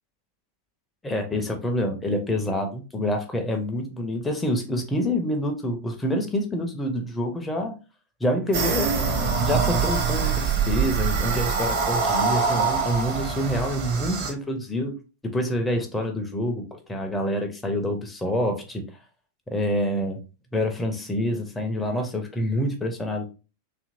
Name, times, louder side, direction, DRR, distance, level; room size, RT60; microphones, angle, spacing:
voice 1, 1.0-7.7 8.2-8.9 9.4-15.0 15.2-18.8 19.5-20.2 20.5-23.3, equal, 10° left, 4 dB, 0.5 m, -27 dB
sound 1, 8.5-14.3, right 5 dB, 50° right, 0.7 m, -24 dB
2.7 x 2.5 x 2.6 m, 0.32 s
figure-of-eight pair, 90°, 0 cm